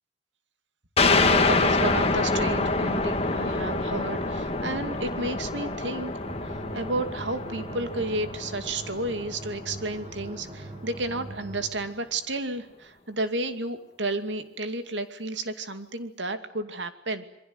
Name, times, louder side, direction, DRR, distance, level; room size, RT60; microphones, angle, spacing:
sound 1, 1.0-10.2, left 3 dB, 35° left, 1.9 m, -26 dB
voice 1, 1.0-6.1 6.4-17.2, right 2 dB, 80° right, 9 dB, 2.5 m, -32 dB
sound 2, 6.2-11.9, right 1 dB, 30° right, 1.3 m, -42 dB
27.5 x 23.0 x 8.0 m, 0.81 s
head